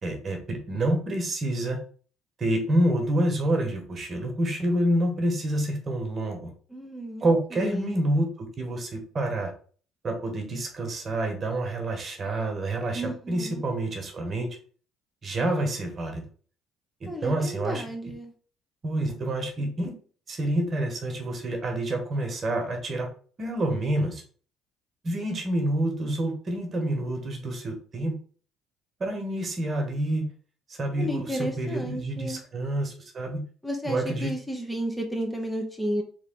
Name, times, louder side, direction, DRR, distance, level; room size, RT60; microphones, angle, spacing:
voice 1, 0.0-1.8 2.4-6.5 7.2-9.5 10.0-14.5 15.2-16.2 17.0-18.1 18.8-20.0 20.3-23.1 23.4-24.2 25.0-28.2 29.0-30.3 30.7-33.4 33.8-34.3, right 1 dB, 45° right, 3 dB, 1.4 m, -28 dB
voice 2, 6.7-7.3 7.5-8.0 12.9-13.6 17.1-18.3 31.0-32.4 33.6-36.0, equal, 5° left, 2 dB, 1.1 m, -32 dB
3.6 x 3.5 x 3.8 m, 0.42 s
hypercardioid pair, 60°, 0 cm